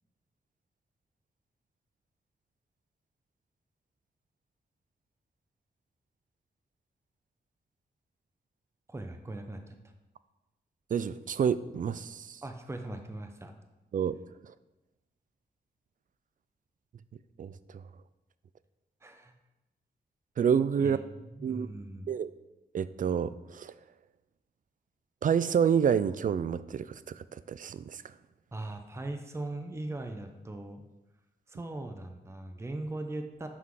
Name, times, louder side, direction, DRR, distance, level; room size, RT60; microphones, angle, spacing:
voice 1, 8.9-9.7 12.4-13.5 19.0-19.3 20.8-22.1 28.5-30.8 31.5-33.5, right 2 dB, 15° right, 6 dB, 0.7 m, -39 dB
voice 2, 10.9-12.4 13.9-14.2 17.4-17.6 20.4-21.0 21.4-21.7 22.1-22.3 22.7-23.7 25.2-28.0, right 7 dB, 50° right, 15 dB, 0.4 m, -28 dB
6.0 x 5.4 x 4.8 m, 1.0 s
cardioid pair, 75°, 17 cm